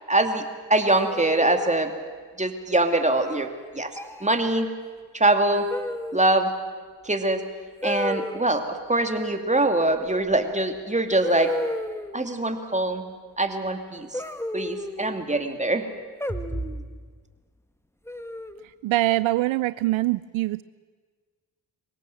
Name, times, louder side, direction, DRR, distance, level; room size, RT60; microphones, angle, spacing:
voice 1, 0.1-0.4 0.7-1.9 2.4-3.5 3.7-3.9 4.2-4.7 5.1-5.7 6.1-6.5 7.0-7.4 7.8-11.5 12.1-13.1 13.4-14.2 14.5-15.9 16.3-16.4, right 2 dB, 15° right, 6 dB, 2.6 m, -23 dB
sound 1, 0.9-1.8 3.1-3.5 3.9-4.3 5.7-6.3 7.8-8.4 10.3-10.4 11.2-12.2 14.1-15.2 16.2-16.8 18.1-18.6, left 1 dB, 5° left, 1.3 m, -32 dB
voice 2, 18.8-20.6, right 17 dB, 75° right, 17 dB, 0.6 m, -23 dB
22.5 x 17.5 x 7.8 m, 1.5 s
supercardioid pair, 45°, 48 cm